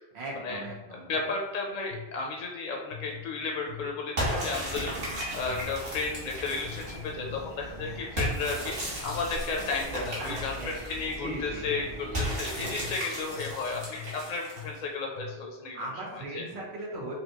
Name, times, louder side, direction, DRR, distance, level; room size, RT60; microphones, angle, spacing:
voice 1, 0.1-1.3 4.2-4.6 7.8-8.1 10.2-10.7 11.2-11.8 12.1-12.4 13.3-13.4 15.7-17.1, right 1 dB, 90° right, -2 dB, 1.3 m, -39 dB
sound 1, 0.6-1.0 1.9-2.4 2.9-4.7 5.5-5.9 6.6-8.7 9.0-9.5 10.0-10.8 11.6-15.6, left 10 dB, 90° left, 0.9 m, -45 dB
voice 2, 0.9-4.9 5.1-15.8 16.3-16.4, left 4 dB, 55° left, 0 dB, 0.6 m, -33 dB
sound 2, 4.2-7.1 8.2-11.1 12.1-14.8, equal, 65° right, 1.5 m, -35 dB
sound 3, 4.5-12.9, right 1 dB, 30° right, 0.8 m, -42 dB
5.5 x 2.2 x 2.9 m, 1.0 s
omnidirectional pair, 1.1 m